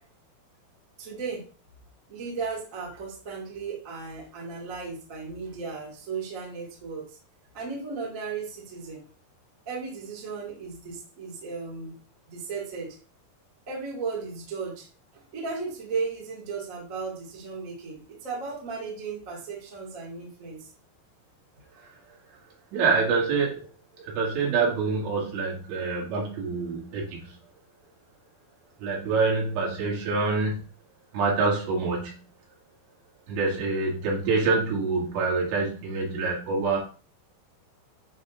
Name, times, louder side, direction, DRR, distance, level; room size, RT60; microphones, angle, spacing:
voice 1, 1.0-1.4 2.1-7.2 7.5-9.0 9.6-11.9 12.3-13.0 13.7-14.9 15.1-20.7, right 4 dB, 50° right, -2 dB, 0.9 m, -35 dB
voice 2, 22.7-23.7 24.0-27.3 28.8-30.6 31.1-32.1 33.3-36.8, right 4 dB, 80° right, -3 dB, 4.3 m, -26 dB
8.1 x 6.0 x 2.5 m, 0.38 s
omnidirectional pair, 5.2 m